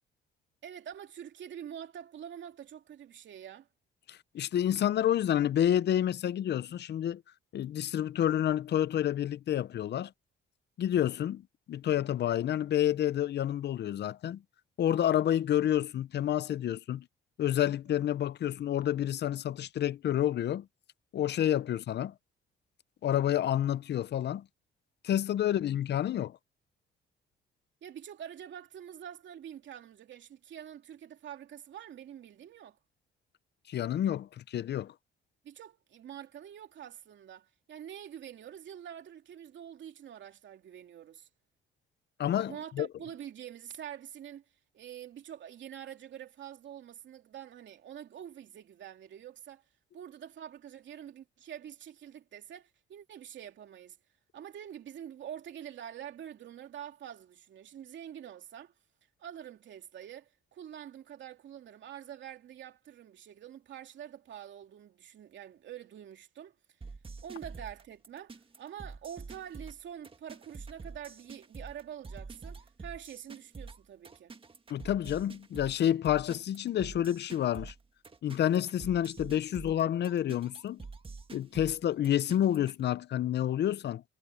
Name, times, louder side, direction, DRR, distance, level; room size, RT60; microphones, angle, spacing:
voice 1, 0.6-3.7 27.8-32.8 35.4-41.3 42.5-44.4 44.7-49.6 49.9-54.0 54.3-58.7 59.2-66.5 67.2-74.3, right 10 dB, 70° right, 2.9 m, -46 dB
voice 2, 4.1-7.2 7.5-10.1 10.8-11.4 11.7-14.4 14.8-17.1 17.4-20.7 21.1-22.1 23.0-24.4 25.0-26.4 33.7-34.9 42.2-42.9 74.7-77.7 78.2-80.9 81.3-84.0, left 11 dB, 60° left, 0.7 m, -29 dB
sound 1, 66.8-82.8, right 4 dB, 25° right, 1.8 m, -47 dB
cardioid pair, 90°, 20 cm